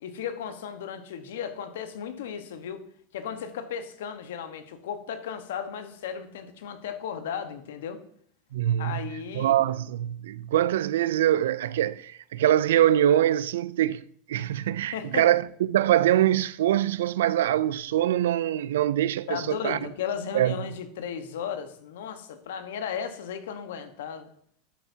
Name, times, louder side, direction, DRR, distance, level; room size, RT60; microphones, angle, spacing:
voice 1, 0.0-2.9 3.1-8.0 8.8-9.5 14.9-15.2 19.3-24.3, left 8 dB, 80° left, 1.1 m, -35 dB
voice 2, 8.5-9.0 9.3-14.0 14.3-19.9 20.3-20.5, right 12 dB, 85° right, 0.3 m, -24 dB
10.5 x 8.2 x 2.8 m
hypercardioid pair, 105°, 0 cm